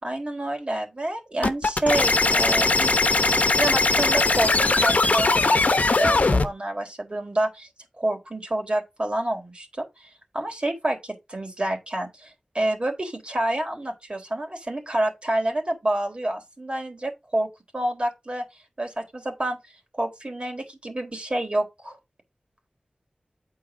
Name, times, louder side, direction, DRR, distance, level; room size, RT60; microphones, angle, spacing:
voice 1, 0.0-3.2 3.6-7.7 8.0-17.5 17.7-18.5 18.8-19.6 19.9-22.0, right 1 dB, 45° right, 3.6 m, -28 dB
sound 1, 1.4-6.5, left 3 dB, 70° left, 0.9 m, -20 dB
8.8 x 4.8 x 4.8 m
wide cardioid pair, 55°, 3 cm